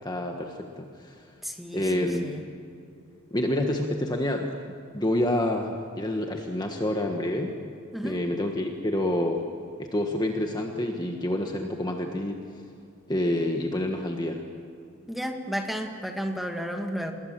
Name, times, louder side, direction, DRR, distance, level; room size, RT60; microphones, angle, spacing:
voice 1, 0.0-1.2 1.7-2.3 3.3-4.5 4.9-7.5 8.0-9.4 9.8-12.4 13.1-14.4, left 1 dB, 20° left, 3 dB, 1.5 m, -28 dB
voice 2, 1.4-2.4 7.9-8.2 15.1-17.1, equal, ahead, 3 dB, 2.0 m, -32 dB
27.0 x 20.5 x 7.6 m, 2.4 s
head